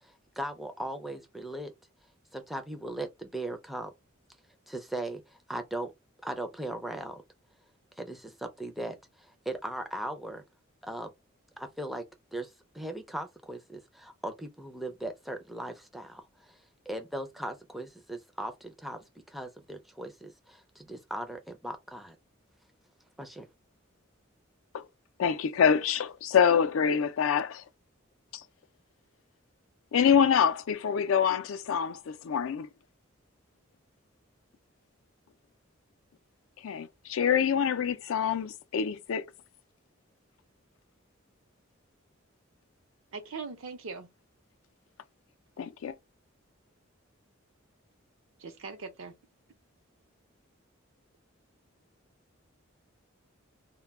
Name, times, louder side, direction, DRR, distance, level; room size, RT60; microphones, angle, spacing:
voice 1, 0.0-1.7 2.3-3.9 4.7-5.9 6.2-7.2 8.0-10.4 10.8-11.1 11.6-12.0 12.3-16.6 16.9-22.2 23.2-23.5, right 1 dB, ahead, 0.4 m, -38 dB
voice 2, 25.2-27.6 29.9-32.7 36.6-39.3 45.6-45.9, left 7 dB, 75° left, 0.4 m, -26 dB
voice 3, 43.1-44.1 48.4-49.1, right 4 dB, 80° right, 0.6 m, -40 dB
2.2 x 2.1 x 3.4 m
head